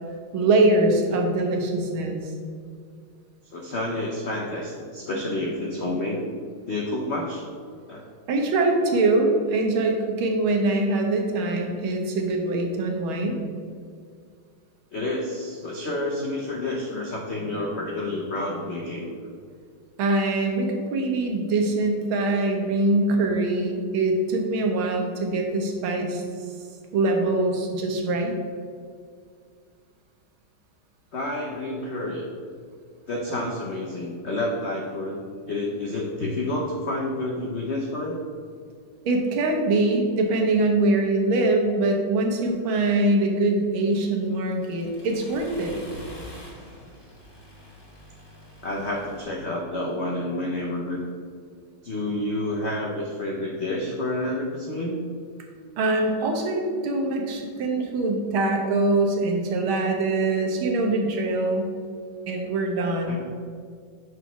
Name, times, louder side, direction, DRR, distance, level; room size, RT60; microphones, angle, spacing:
voice 1, 0.3-2.3 8.3-13.4 20.0-26.2 26.9-28.3 39.1-45.8 55.8-61.6 62.3-63.2, right 2 dB, 85° right, 2 dB, 1.8 m, -23 dB
voice 2, 3.4-6.2 6.7-7.4 7.9-8.0 14.9-19.1 31.1-32.2 33.1-35.2 35.5-38.2 48.6-51.0 51.8-55.0 63.1-63.2, left 1 dB, 80° left, -1 dB, 0.6 m, -29 dB
Accelerating revving vroom, 43.9-49.2, left 1 dB, 20° left, 0.6 m, -45 dB
6.2 x 4.1 x 5.9 m, 2.1 s
omnidirectional pair, 2.2 m